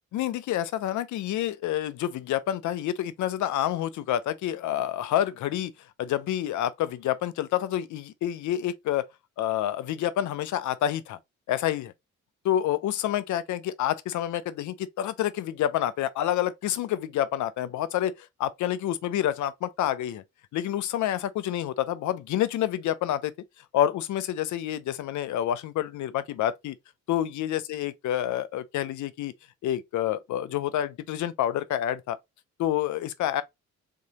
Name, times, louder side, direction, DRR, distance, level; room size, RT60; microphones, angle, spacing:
voice 1, 0.1-5.7 6.0-9.1 9.4-11.2 11.5-11.9 12.4-20.2 20.5-23.3 23.7-26.8 27.1-29.3 29.6-32.2 32.6-33.4, left 11 dB, 75° left, 0.6 m, -28 dB
3.8 x 3.7 x 2.9 m
cardioid pair, 90°, 30 cm